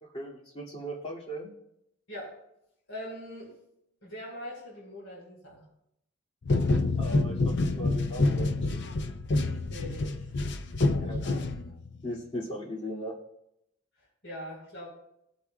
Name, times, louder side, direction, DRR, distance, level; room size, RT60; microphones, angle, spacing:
voice 1, 0.0-1.5 7.0-8.9 11.0-11.2 12.0-13.1, equal, 30° left, -3 dB, 2.4 m, -38 dB
voice 2, 2.9-3.5 4.0-5.7 9.4-10.3 11.0-11.4 14.2-14.9, equal, 80° left, -5 dB, 4.2 m, -42 dB
sound 1, 6.4-12.0, left 2 dB, 55° left, 0.6 m, -27 dB
18.5 x 8.4 x 2.3 m, 0.80 s
head